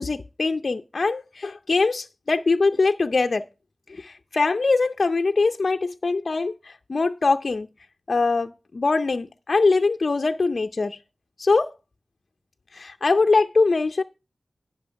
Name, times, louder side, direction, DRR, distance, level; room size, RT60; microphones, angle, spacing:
voice 1, 0.0-3.4 3.9-7.7 8.1-11.0 11.4-11.7 12.7-14.0, left 3 dB, 65° left, 0.5 m, -22 dB
10.5 x 5.8 x 5.6 m
wide cardioid pair, 60°, 0 cm